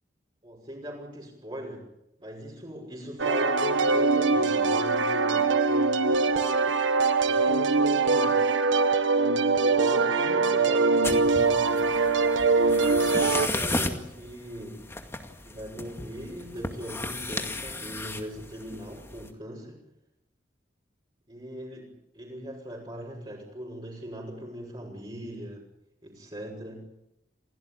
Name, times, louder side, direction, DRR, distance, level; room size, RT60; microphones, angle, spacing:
voice 1, 0.4-1.9 2.2-6.4 7.2-8.4 9.2-12.1 13.0-14.9 15.4-19.8 21.3-25.6 26.0-26.9, equal, 25° right, -4 dB, 5.9 m, -40 dB
sound 1, 3.2-13.5, right 4 dB, 85° right, 1.7 m, -23 dB
sound 2, 11.0-19.3, left 2 dB, 15° left, 2.1 m, -35 dB
28.5 x 17.0 x 8.9 m, 0.86 s
head